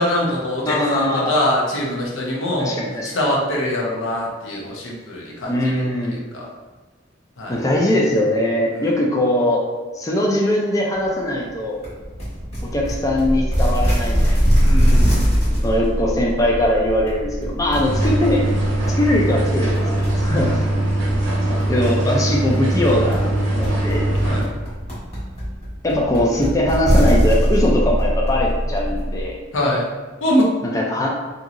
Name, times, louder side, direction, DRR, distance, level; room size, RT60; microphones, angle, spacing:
voice 1, 0.0-2.8 3.1-5.6 6.3-6.4 7.4-7.6 8.8-8.9 14.6-15.6 17.8-18.0 20.3-20.6 24.2-24.5 29.5-29.9 30.2-30.5, left 1 dB, 90° left, -3 dB, 0.8 m, -23 dB
voice 2, 0.7-1.3 2.6-3.2 5.5-6.2 7.5-9.6 9.9-11.8 12.7-14.5 15.6-18.5 19.0-20.7 21.7-23.2 23.6-24.1 25.8-29.4 30.6-31.1, left 1 dB, 20° left, -2 dB, 0.3 m, -21 dB
sound 1, 11.8-29.2, equal, 35° left, 1.3 m, -22 dB
sound 2, 17.8-24.4, right 1 dB, 75° right, 0.7 m, -21 dB
2.8 x 2.7 x 2.5 m, 1.3 s
head